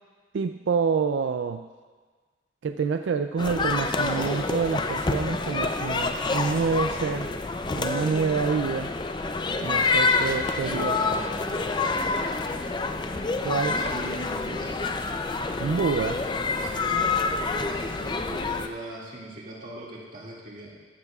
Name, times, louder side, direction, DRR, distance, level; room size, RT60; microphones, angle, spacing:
voice 1, 0.3-1.7 2.6-7.3 7.7-8.9 9.6-11.0 13.4-13.7 15.6-16.2, right 5 dB, 90° right, 8 dB, 0.4 m, -27 dB
sound 1, 3.4-18.7, left 3 dB, 25° left, 0.4 m, -27 dB
voice 2, 10.3-12.8 13.6-14.8 16.6-20.8, right 1 dB, 45° right, -4 dB, 2.1 m, -40 dB
14.0 x 12.0 x 2.4 m, 1.4 s
head